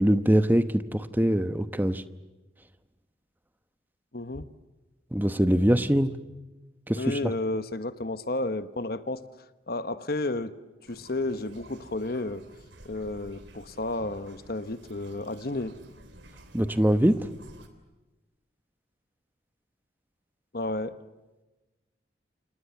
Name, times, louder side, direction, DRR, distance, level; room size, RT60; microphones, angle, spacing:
voice 1, 0.0-2.0 5.1-6.1 6.9-7.3 16.5-17.3, equal, 10° right, 11 dB, 0.9 m, -23 dB
voice 2, 4.1-4.5 7.0-9.2 9.7-10.6 10.9-12.4 12.8-15.7 20.5-21.0, left 2 dB, 55° left, 12 dB, 1.1 m, -32 dB
sound 1, 10.8-17.7, right 1 dB, 80° right, 3.2 m, -51 dB
28.0 x 28.0 x 7.2 m, 1.1 s
head